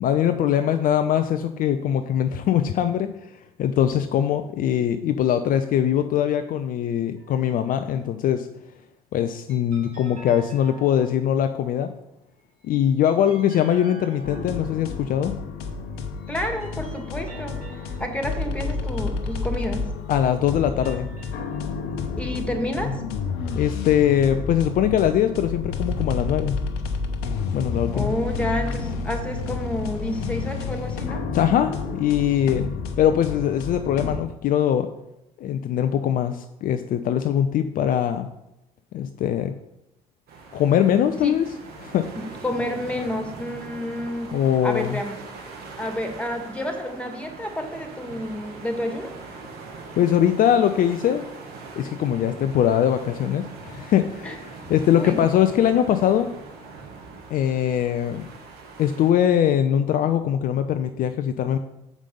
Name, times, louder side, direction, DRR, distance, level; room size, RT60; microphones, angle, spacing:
voice 1, 0.0-3.3 3.6-8.5 9.1-11.9 12.6-15.3 20.1-21.1 23.5-26.6 27.5-28.1 31.3-32.7 33.0-34.9 35.4-38.3 38.9-39.5 40.5-41.5 41.8-42.1 44.3-45.0 50.0-51.2 51.8-56.3 57.3-58.3 58.8-61.6, left 10 dB, 50° left, 8 dB, 0.5 m, -22 dB
sound 1, 7.2-7.9 9.5-11.4 12.4-15.2 15.9-20.0 20.6-22.2, right 2 dB, 85° right, 1.9 m, -49 dB
sound 2, 14.2-34.2, left 4 dB, 65° left, 1.0 m, -30 dB
voice 2, 16.3-17.6 18.0-19.9 22.2-23.0 27.9-31.2 41.2-41.3 42.4-44.3 44.6-45.2 45.8-49.1 54.2-54.4 54.9-55.2, left 1 dB, 5° left, 4 dB, 1.9 m, -29 dB
sound 3, 40.3-59.1, right 4 dB, 55° right, 1.7 m, -41 dB
7.3 x 5.2 x 5.3 m, 0.87 s
hypercardioid pair, 55°, 19 cm